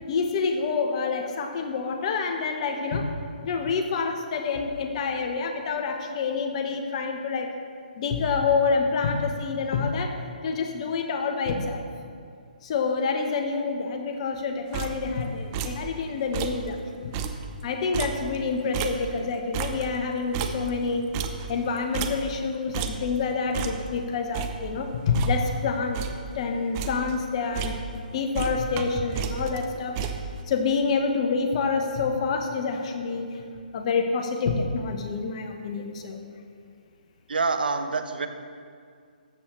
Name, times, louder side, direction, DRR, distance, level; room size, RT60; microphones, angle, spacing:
voice 1, 0.1-3.1 3.4-7.5 8.0-10.2 10.4-11.8 12.6-17.1 17.6-21.1 21.5-26.0 26.3-30.0 30.5-33.4 33.7-36.2, left 4 dB, 40° left, 4 dB, 1.0 m, -27 dB
sound 1, 14.7-15.2 15.5-15.9 16.2-16.7 17.0-19.3 19.5-22.5 22.7-23.2 23.5-24.0 24.3-25.6 25.9-26.3 26.6-27.2 27.5-28.1 28.3-30.4, right 6 dB, 25° right, 0.6 m, -32 dB
voice 2, 37.3-38.3, right 4 dB, 75° right, 8 dB, 0.8 m, -26 dB
13.5 x 7.4 x 3.1 m, 2.2 s
hypercardioid pair, 145°, 5 cm